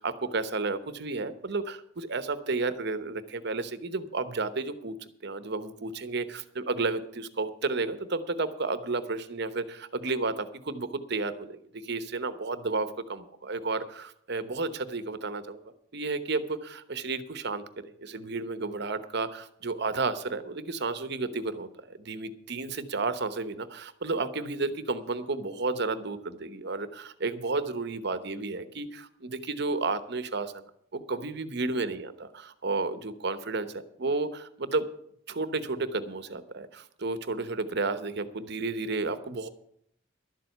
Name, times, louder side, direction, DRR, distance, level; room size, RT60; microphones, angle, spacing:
voice 1, 0.0-4.9 5.2-15.6 15.9-30.6 30.9-34.8 35.3-39.5, right 3 dB, 60° right, 12 dB, 1.0 m, -32 dB
12.0 x 7.6 x 8.1 m, 0.70 s
head